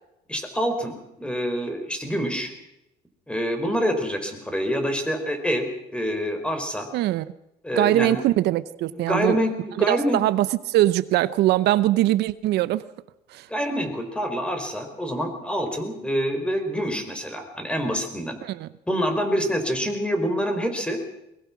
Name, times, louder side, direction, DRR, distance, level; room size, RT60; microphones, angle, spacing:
voice 1, 0.3-2.5 3.3-6.9 7.6-8.2 8.9-10.2 13.5-18.4 18.9-21.0, equal, 5° left, 4.8 m, -26 dB
voice 2, 6.9-7.3 7.8-9.4 9.8-12.8 13.3-13.5 18.4-18.7, right 14 dB, 80° right, 0.8 m, -22 dB
22.5 x 21.5 x 6.1 m
cardioid pair, 110°, 17 cm